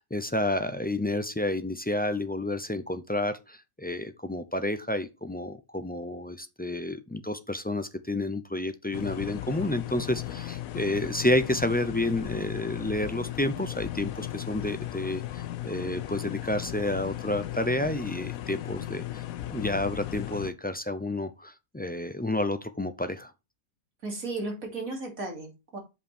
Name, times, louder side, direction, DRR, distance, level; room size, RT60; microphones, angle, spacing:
voice 1, 0.0-19.2 19.5-23.3, left 1 dB, 15° left, 0.3 m, -30 dB
sound 1, 8.9-20.5, left 13 dB, 90° left, 1.1 m, -36 dB
voice 2, 24.0-25.8, right 2 dB, 90° right, 3.4 m, -35 dB
7.5 x 5.5 x 4.3 m
omnidirectional pair, 1.4 m